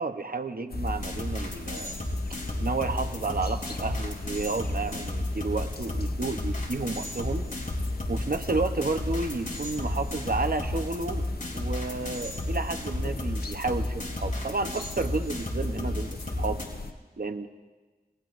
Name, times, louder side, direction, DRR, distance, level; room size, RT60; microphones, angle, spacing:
voice 1, 0.0-2.0 2.6-7.5 8.1-11.3 11.5-16.6 17.2-17.5, right 3 dB, 65° right, 8 dB, 0.8 m, -31 dB
sound 1, 0.7-16.9, left 4 dB, 75° left, 0.7 m, -40 dB
sound 2, 0.7-16.7, left 1 dB, 55° left, 3.2 m, -32 dB
26.0 x 19.0 x 2.5 m, 1.3 s
wide cardioid pair, 40°, 16 cm